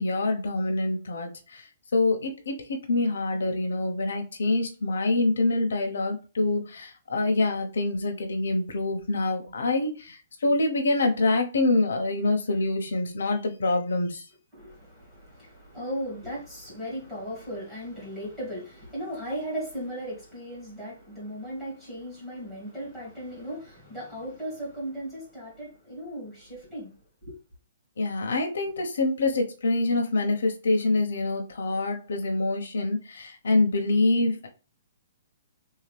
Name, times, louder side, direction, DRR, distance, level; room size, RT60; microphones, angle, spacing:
voice 1, 0.0-1.7 1.9-14.2 28.0-34.5, left 2 dB, 90° left, 0.9 m, -26 dB
voice 2, 14.5-26.9 27.2-27.4, equal, ahead, 1.9 m, -37 dB
3.6 x 2.8 x 3.3 m
hypercardioid pair, 175°, 0 cm